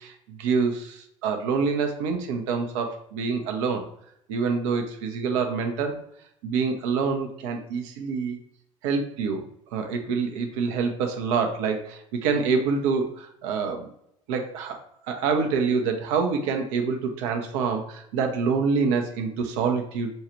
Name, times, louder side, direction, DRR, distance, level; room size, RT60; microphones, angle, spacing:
voice 1, 0.0-3.8 4.3-6.0 6.4-8.4 8.8-13.9 14.3-14.8 15.0-20.1, right 5 dB, 70° right, 4 dB, 0.8 m, -26 dB
6.4 x 2.4 x 3.0 m, 0.73 s
hypercardioid pair, 65°, 17 cm